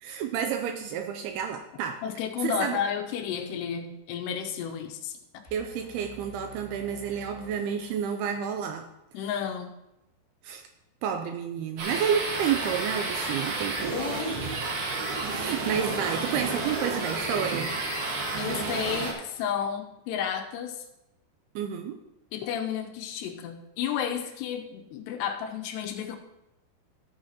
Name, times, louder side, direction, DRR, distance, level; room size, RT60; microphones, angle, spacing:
voice 1, 0.0-2.0 2.4-2.8 5.5-8.9 10.4-10.6 11.0-14.0 15.3-17.7 21.6-22.0, right 8 dB, 85° right, 6 dB, 2.3 m, -30 dB
voice 2, 2.0-5.1 9.1-9.7 13.9-14.4 18.4-20.8 22.3-26.2, left 8 dB, 80° left, 4 dB, 2.9 m, -32 dB
sound 1, 5.4-8.5, right 2 dB, 50° left, 0.9 m, -48 dB
sound 2, 11.8-19.1, right 3 dB, 65° right, 3.5 m, -31 dB
14.0 x 8.7 x 3.0 m, 0.89 s
omnidirectional pair, 5.0 m